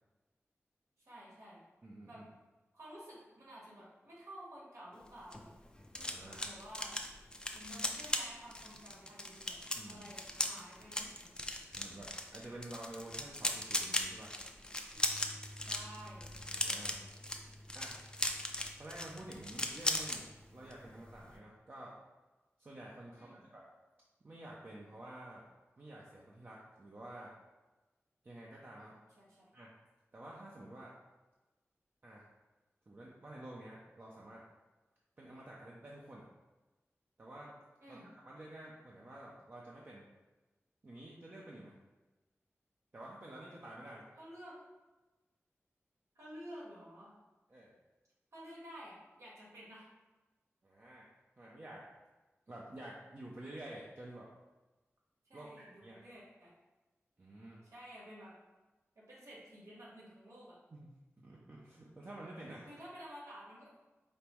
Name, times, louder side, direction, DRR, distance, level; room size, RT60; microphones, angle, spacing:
voice 1, 1.0-1.6 2.0-2.2 2.7-5.5 6.1-7.0 7.5-9.6 9.8-11.4 15.5-16.3 23.2-23.4 28.8-28.9 29.2-29.5 37.8-38.1 44.2-44.6 46.1-47.1 48.3-49.9 55.2-56.5 57.6-58.3 58.9-60.6 62.7-63.7, equal, 80° right, -6 dB, 1.4 m, -52 dB
voice 2, 1.8-2.2 5.9-6.5 9.8-10.0 11.7-14.3 16.5-17.0 17.7-17.9 18.8-20.3 20.5-22.0 22.6-23.6 24.2-25.4 25.8-27.3 28.2-28.9 29.5-29.7 30.1-31.0 32.0-32.2 32.9-34.4 35.2-36.3 37.2-37.5 37.9-38.0 38.2-40.0 40.8-41.7 42.9-44.1 47.5-47.7 50.6-51.1 51.4-51.9 52.5-54.3 55.3-56.0 57.2-57.6 60.7-60.9 61.2-62.8, right 1 dB, 45° right, -4 dB, 0.6 m, -50 dB
sound 1, 5.0-20.2 20.5-20.8 21.1-21.3, left 1 dB, 15° left, 0.4 m, -38 dB
Bass guitar, 14.9-21.2, equal, 65° right, 1.3 m, -55 dB
5.2 x 2.0 x 4.4 m, 1.1 s
wide cardioid pair, 95°, 5 cm